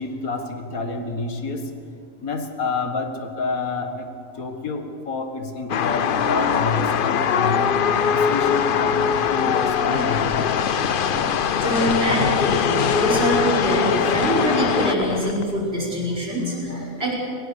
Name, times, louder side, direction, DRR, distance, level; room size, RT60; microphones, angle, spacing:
voice 1, 0.0-1.7 2.2-4.1 4.3-7.7 8.1-10.5 16.6-17.0, left 3 dB, 90° left, 5 dB, 2.2 m, -28 dB
sound 1, 5.7-14.9, left 7 dB, 50° left, 0.7 m, -21 dB
sound 2, 9.7-15.5, left 5 dB, 70° left, 1.6 m, -31 dB
voice 2, 11.5-17.1, right 1 dB, 45° right, -4 dB, 5.5 m, -24 dB
23.0 x 19.0 x 6.7 m, 2.6 s
omnidirectional pair, 1.4 m